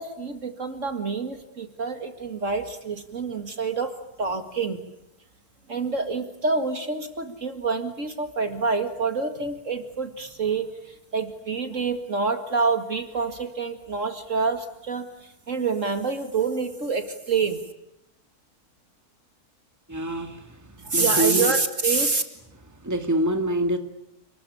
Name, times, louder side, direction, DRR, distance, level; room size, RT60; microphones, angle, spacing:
voice 1, 0.0-4.8 5.7-17.6 20.8-22.2, right 4 dB, 55° right, 8 dB, 2.3 m, -27 dB
voice 2, 19.9-21.5 22.8-23.8, right 1 dB, 10° right, 6 dB, 2.2 m, -26 dB
29.0 x 21.0 x 8.6 m, 0.86 s
omnidirectional pair, 1.6 m